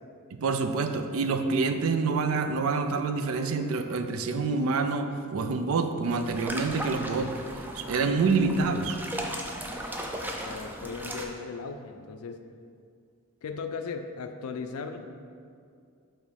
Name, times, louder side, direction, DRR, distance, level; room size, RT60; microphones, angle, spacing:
voice 1, 0.4-9.0, right 4 dB, 80° right, 7 dB, 0.4 m, -27 dB
sound 1, 6.1-11.3, equal, 10° right, 0.3 m, -37 dB
voice 2, 10.5-12.4 13.4-15.0, left 5 dB, 85° left, 7 dB, 0.4 m, -37 dB
5.2 x 3.6 x 5.1 m, 2.3 s
head